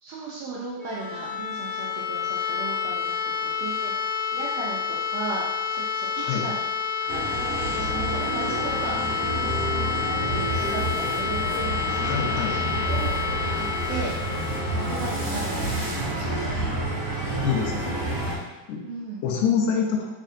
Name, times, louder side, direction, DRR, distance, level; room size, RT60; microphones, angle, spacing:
voice 1, 0.0-4.1 4.3-6.6 7.0-9.0 9.4-9.8 10.3-12.1 12.5-12.6 12.9-13.2 13.5-14.1 14.7-16.4 18.8-19.2, right 3 dB, 85° right, -5 dB, 1.4 m, -36 dB
sound 1, 0.7-16.5, left 6 dB, 35° left, 1.0 m, -29 dB
sound 2, 7.1-18.4, right 1 dB, 65° right, 1.0 m, -29 dB
voice 2, 12.0-12.6 17.4-18.1 18.7-18.8 19.2-20.1, left 6 dB, 85° left, 0 dB, 2.0 m, -26 dB
4.1 x 3.5 x 2.6 m, 1.1 s
omnidirectional pair, 3.5 m